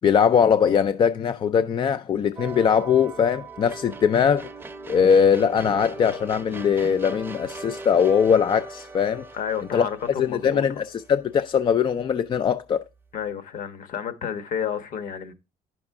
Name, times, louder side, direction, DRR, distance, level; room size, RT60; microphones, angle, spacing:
voice 1, 0.0-4.5 4.9-9.3 9.7-9.9 10.2-12.8, left 7 dB, 30° left, 0.4 m, -21 dB
sound 1, 2.4-11.6, right 3 dB, 15° right, 0.7 m, -40 dB
voice 2, 9.4-10.6 13.1-15.3, left 8 dB, 55° left, 1.2 m, -31 dB
9.7 x 6.0 x 3.6 m
cardioid pair, 155°, 16 cm